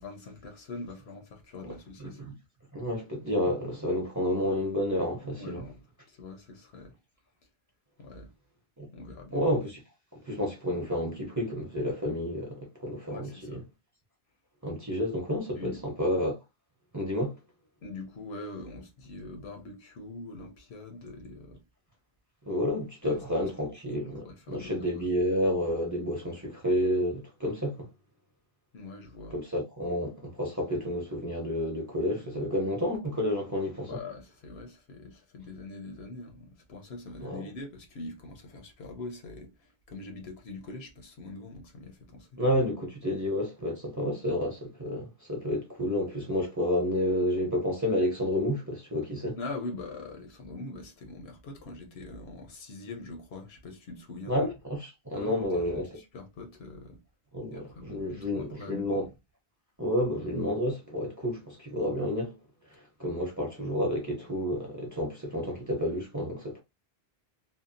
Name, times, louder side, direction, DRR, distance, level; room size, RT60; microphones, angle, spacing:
voice 1, 0.0-2.2 5.4-5.8 6.1-6.9 8.0-8.3 8.9-9.4 13.1-13.7 15.5-15.8 17.8-21.6 23.0-23.5 24.0-25.0 28.7-29.4 33.9-42.3 49.4-54.5 55.1-57.0 57.5-59.1, left 3 dB, 80° left, 1.0 m, -43 dB
voice 2, 2.0-2.3 2.7-5.6 8.8-8.9 9.3-9.8 10.2-13.6 14.6-16.4 16.9-17.4 22.5-27.9 29.3-33.9 37.2-37.4 42.4-49.4 54.3-55.9 57.3-59.1 59.8-62.3 63.0-66.6, left 1 dB, 20° right, 0.6 m, -30 dB
2.7 x 2.1 x 2.5 m
omnidirectional pair, 1.0 m